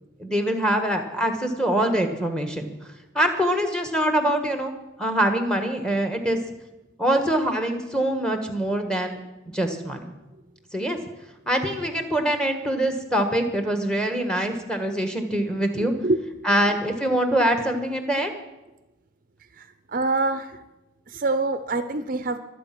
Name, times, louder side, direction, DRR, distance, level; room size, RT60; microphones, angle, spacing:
voice 1, 0.2-2.6 3.1-4.7 5.0-6.4 7.0-9.2 9.5-10.1 10.7-11.0 11.5-15.9 16.4-18.3, right 1 dB, 5° left, 6 dB, 1.4 m, -24 dB
voice 2, 15.8-16.2 19.6-20.6 21.1-22.4, right 2 dB, 45° right, 11 dB, 0.6 m, -26 dB
23.5 x 8.5 x 6.0 m, 1.0 s
head